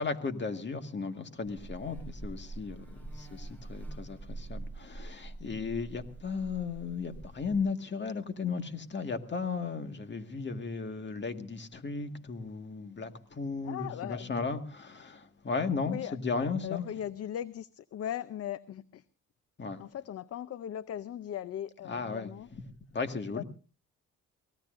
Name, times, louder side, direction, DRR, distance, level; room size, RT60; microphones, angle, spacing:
voice 1, 0.0-16.8 19.6-19.8 21.9-22.6 22.9-23.4, left 4 dB, 35° left, 1.8 m, -35 dB
Buzz, 1.5-7.6, right 2 dB, 5° left, 5.9 m, -44 dB
voice 2, 13.6-14.3 15.8-16.2 16.4-19.0 19.8-22.5 23.3-23.4, left 10 dB, 55° left, 0.7 m, -38 dB
24.5 x 18.0 x 2.6 m
cardioid pair, 90°, 30 cm